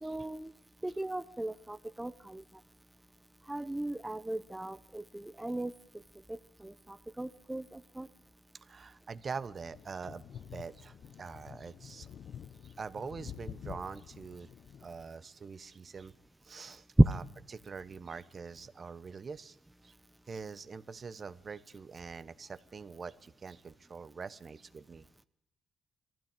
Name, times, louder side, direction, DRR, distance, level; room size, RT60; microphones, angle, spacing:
voice 1, 0.0-0.5 0.8-2.4 3.5-5.7 6.3-8.1 17.0-17.1, right 1 dB, 10° right, 12 dB, 0.8 m, -32 dB
voice 2, 8.6-10.2 10.5-12.1 12.6-14.5 14.8-16.1 16.4-16.9 17.5-19.6 19.8-19.9 20.3-25.1, right 5 dB, 40° right, 15 dB, 1.0 m, -44 dB
sound 1, 9.6-15.1, left 9 dB, 60° left, 0.8 m, -49 dB
21.0 x 15.5 x 8.9 m, 0.76 s
cardioid pair, 90°, 0 cm